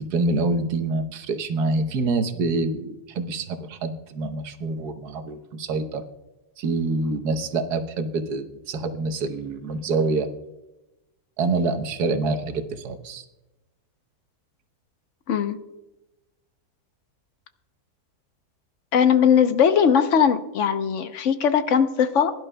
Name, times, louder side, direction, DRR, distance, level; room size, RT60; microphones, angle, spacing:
voice 1, 0.0-6.0 6.6-10.3 11.4-13.2, right 3 dB, 90° right, 8 dB, 1.5 m, -26 dB
voice 2, 18.9-22.3, left 7 dB, 60° left, 10 dB, 1.0 m, -19 dB
21.5 x 11.0 x 2.2 m, 1.0 s
omnidirectional pair, 1.6 m